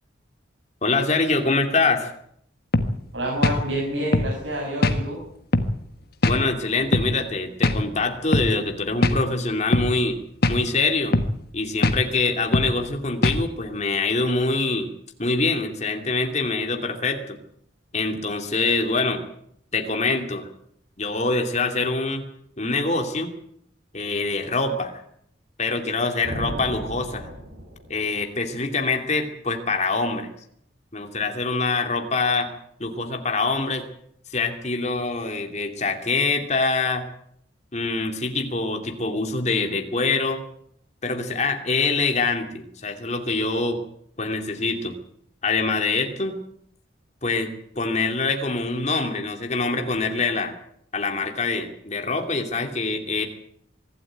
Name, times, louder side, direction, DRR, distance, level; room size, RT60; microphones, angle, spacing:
voice 1, 0.8-2.1 6.2-10.2 10.5-11.2 11.5-14.9 15.2-17.4 17.9-19.2 19.7-20.5 21.0-22.2 22.6-23.3 23.9-25.0 25.6-27.3 27.9-30.3 30.9-32.5 32.8-33.9 34.3-37.0 37.7-40.4 41.0-43.8 44.2-45.0 45.4-46.4 47.2-50.6 50.9-53.2, left 3 dB, 35° left, 4 dB, 2.7 m, -24 dB
sound 1, 2.7-2.9 3.4-3.6 4.1-4.3 4.8-5.0 5.5-5.7 6.2-6.4 6.9-7.1 7.6-7.8 8.3-8.5 9.0-9.2 9.7-9.9 10.4-10.6 11.1-11.3 11.8-12.0 12.5-12.7 13.2-13.4, left 2 dB, 50° left, 1.4 m, -20 dB
voice 2, 3.1-5.2, right 1 dB, 75° right, -2 dB, 6.5 m, -28 dB
sound 2, 26.2-28.2, equal, 55° right, 6.6 m, -35 dB
24.5 x 12.5 x 9.2 m, 0.71 s
head